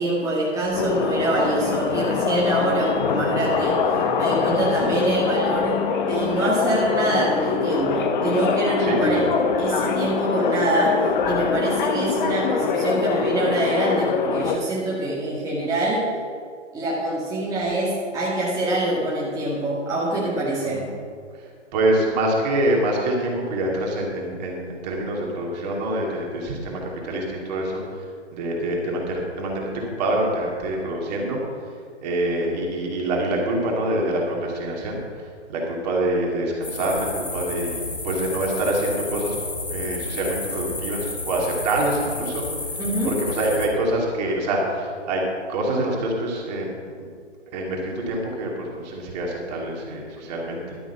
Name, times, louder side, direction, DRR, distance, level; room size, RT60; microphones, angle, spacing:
voice 1, 0.0-5.8 6.1-9.2 9.6-16.1 16.7-20.8 42.8-43.2, right 1 dB, 10° right, -7 dB, 2.0 m, -25 dB
sound 1, 0.7-14.6, left 5 dB, 40° left, 1.1 m, -23 dB
voice 2, 8.8-9.3 20.6-20.9 21.3-21.4 21.7-28.0 28.3-31.4 32.0-35.0 35.5-39.4 39.7-42.5 43.0-45.2 45.5-46.7 47.0-47.1 47.5-50.8, right 1 dB, 35° right, -1 dB, 2.8 m, -25 dB
sound 2, 36.6-43.7, left 2 dB, 85° left, 2.1 m, -31 dB
12.0 x 9.0 x 5.8 m, 2.2 s
figure-of-eight pair, 130°, 37 cm